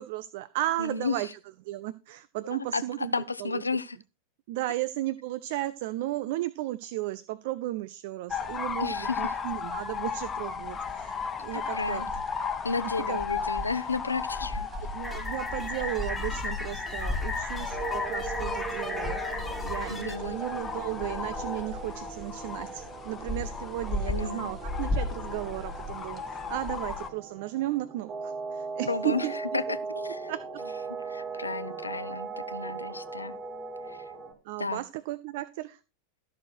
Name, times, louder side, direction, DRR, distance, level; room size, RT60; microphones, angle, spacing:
voice 1, 0.0-1.3 1.6-3.1 3.4-3.6 4.5-12.2 12.8-13.5 14.7-29.3 30.3-30.4 34.4-35.8, right 16 dB, 50° right, 0.5 m, -35 dB
voice 2, 0.8-1.3 2.5-4.0 8.8-9.2 11.5-12.1 12.6-14.6 19.9-20.4 24.1-24.5 28.9-29.3 29.5-29.6 29.9-30.3 31.1-33.4 33.8-34.1 34.6-34.8, left 4 dB, 80° left, 0.7 m, -32 dB
sound 1, 8.3-27.1, left 4 dB, 20° left, 1.1 m, -34 dB
sound 2, 15.0-20.2, left 2 dB, 5° left, 1.8 m, -37 dB
sound 3, 17.7-34.3, right 4 dB, 25° right, 4.0 m, -39 dB
13.5 x 6.5 x 4.4 m
figure-of-eight pair, 90°, 0 cm